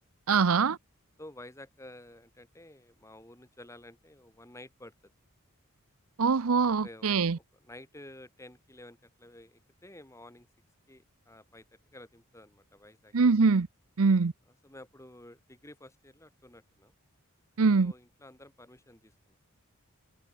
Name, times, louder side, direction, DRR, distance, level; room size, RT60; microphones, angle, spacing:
voice 1, 0.3-0.8 6.2-7.4 13.1-13.7 14.0-14.3 17.6-17.9, right 4 dB, 75° right, 0.6 m, -23 dB
voice 2, 1.2-5.1 6.8-7.1 7.3-10.5 10.9-11.7 11.9-13.1 14.6-16.9 17.8-19.4, left 1 dB, 15° left, 3.5 m, -51 dB
head